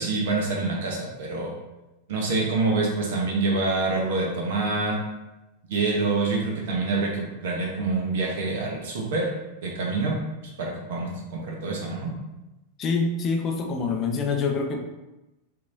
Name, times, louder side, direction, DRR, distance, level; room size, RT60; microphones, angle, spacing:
voice 1, 0.0-1.5 2.1-5.0 5.6-9.3 9.6-10.1 10.6-12.1, right 3 dB, 55° right, -1 dB, 0.9 m, -26 dB
voice 2, 12.8-14.8, left 4 dB, 30° left, 3 dB, 0.5 m, -25 dB
4.5 x 2.8 x 2.5 m, 1.0 s
figure-of-eight pair, 90°, 0 cm